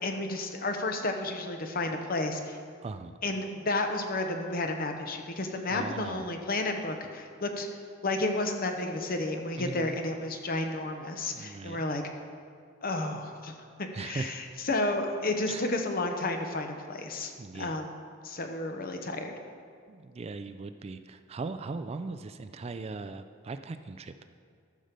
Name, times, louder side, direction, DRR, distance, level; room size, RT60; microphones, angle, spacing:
voice 1, 0.0-2.6 3.2-7.7 8.0-12.0 12.8-13.5 13.8-18.0 18.2-19.3, left 2 dB, 50° left, 4 dB, 0.9 m, -32 dB
voice 2, 2.8-3.2 5.7-6.3 9.6-10.0 11.3-11.8 13.9-14.4 15.5-15.6 17.4-17.8 19.9-24.1, right 3 dB, 30° right, 10 dB, 0.3 m, -39 dB
13.0 x 6.4 x 5.2 m, 2.1 s
head